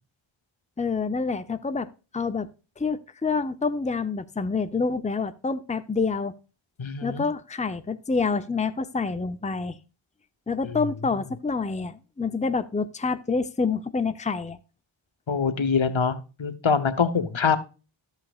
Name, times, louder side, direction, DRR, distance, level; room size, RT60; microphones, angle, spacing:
voice 1, 0.8-1.9 2.1-2.5 2.8-6.3 7.0-9.8 10.5-14.6, left 4 dB, 15° left, 0.7 m, -27 dB
voice 2, 6.8-7.2 15.3-17.6, left 5 dB, 70° left, 1.1 m, -24 dB
14.0 x 5.7 x 2.4 m
wide cardioid pair, 45°, 50 cm